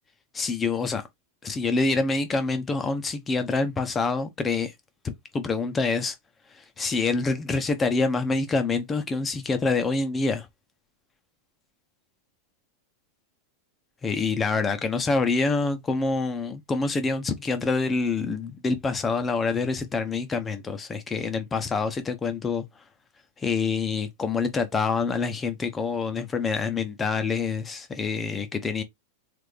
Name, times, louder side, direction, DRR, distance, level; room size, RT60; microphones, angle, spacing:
voice 1, 0.3-1.1 1.4-4.7 5.0-6.1 6.5-10.5 14.0-22.6 23.4-28.8, left 4 dB, 20° left, 0.9 m, -26 dB
3.8 x 3.5 x 3.3 m
figure-of-eight pair, 90°, 0 cm